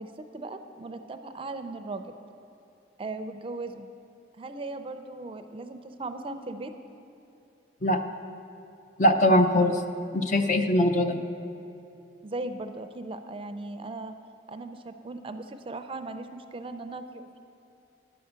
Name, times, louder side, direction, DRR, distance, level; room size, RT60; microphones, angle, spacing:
voice 1, 0.0-2.0 3.0-3.9 4.4-6.7 12.2-14.1 14.5-17.4, right 2 dB, 30° right, 8 dB, 0.4 m, -38 dB
voice 2, 9.0-9.8 10.1-11.2, left 1 dB, 45° left, 7 dB, 0.6 m, -21 dB
10.5 x 5.6 x 8.0 m, 2.8 s
head